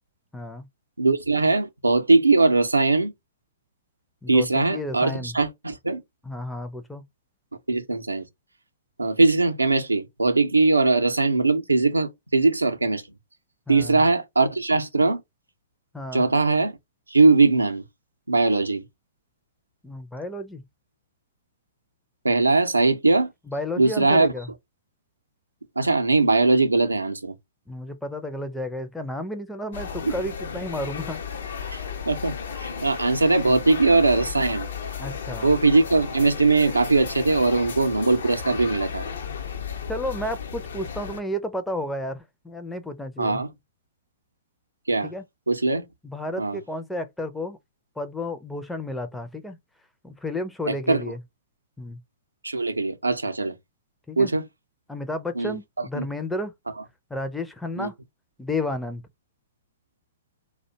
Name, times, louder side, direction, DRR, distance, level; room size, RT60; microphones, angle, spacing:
voice 1, 0.3-0.7 4.2-5.4 6.2-7.0 13.7-14.0 15.9-16.2 19.8-20.6 23.5-24.5 27.7-31.2 35.0-35.5 39.9-43.4 45.0-45.3 46.0-47.6 48.0-49.6 50.0-51.2 51.8-52.0 54.1-54.3 54.9-56.5 57.1-57.9 58.4-59.1, left 1 dB, 5° left, 0.4 m, -32 dB
voice 2, 1.0-3.1 4.3-6.0 7.7-8.3 9.0-13.0 13.7-15.2 16.1-16.7 17.1-17.8 18.3-18.8 22.2-23.3 23.8-24.3 25.8-27.3 30.1-30.2 31.7-31.8 32.1-32.3 32.6-34.7 35.4-39.1 43.2-43.5 44.9-45.1 45.5-45.8 46.4-46.6 50.7-51.0 52.4-53.5 54.2-54.4 55.4-55.5 55.9-56.0 57.8-57.9, right 3 dB, 85° right, 0.5 m, -20 dB
sound 1, 29.7-41.2, left 6 dB, 65° left, 0.5 m, -34 dB
2.4 x 2.1 x 2.7 m
figure-of-eight pair, 110°, 0 cm